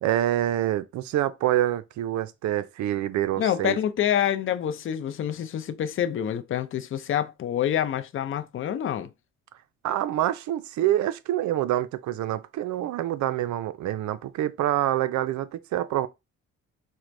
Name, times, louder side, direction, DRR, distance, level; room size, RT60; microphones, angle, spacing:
voice 1, 0.0-3.8 9.8-16.1, right 13 dB, 70° right, 0.5 m, -26 dB
voice 2, 3.4-9.1, left 10 dB, 45° left, 0.5 m, -27 dB
4.4 x 2.1 x 2.5 m
cardioid pair, 90°, 30 cm